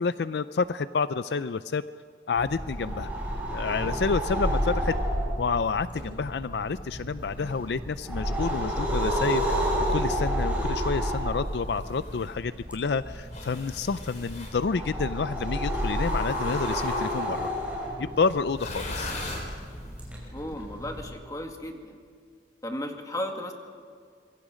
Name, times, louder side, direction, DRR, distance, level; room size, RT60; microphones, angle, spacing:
voice 1, 0.0-1.8 2.3-3.1 3.5-5.0 5.4-9.6 9.9-17.5 18.0-19.1, left 5 dB, 65° left, 14 dB, 0.4 m, -29 dB
sound 1, 2.3-21.1, equal, 10° right, 5.7 m, -31 dB
sound 2, 9.5-10.2 11.1-12.3 13.3-14.6 15.9-17.4 18.5-19.9, left 2 dB, 45° left, 4.2 m, -38 dB
voice 2, 20.3-22.0 22.6-23.5, left 1 dB, 20° left, 3 dB, 2.1 m, -35 dB
26.5 x 23.0 x 5.1 m, 2.2 s
head